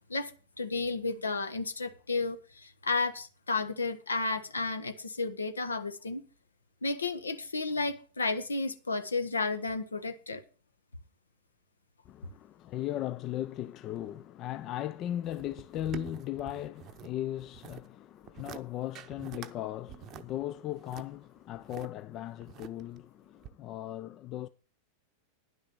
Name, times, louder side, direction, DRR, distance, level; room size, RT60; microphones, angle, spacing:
voice 1, 0.6-6.2 6.8-10.4, left 3 dB, 75° left, 1.1 m, -32 dB
voice 2, 12.1-24.5, left 13 dB, 35° left, 0.4 m, -37 dB
sound 1, 15.2-17.1 17.4-17.9 18.2-18.6 19.0-19.5 19.9-21.9 22.4-23.0 23.4-23.5, right 11 dB, 35° right, 0.7 m, -46 dB
10.5 x 6.4 x 6.7 m
figure-of-eight pair, 90°, 0 cm